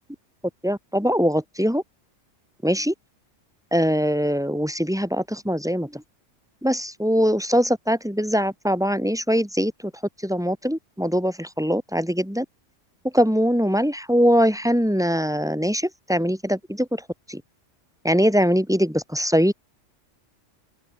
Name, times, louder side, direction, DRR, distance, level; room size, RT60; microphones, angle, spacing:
voice 1, 0.6-1.8 2.6-2.9 3.7-6.0 6.6-9.9 10.2-12.4 13.1-17.0 17.3-17.4 18.0-19.5, equal, 5° right, 3.6 m, -22 dB
open air
omnidirectional pair, 1.3 m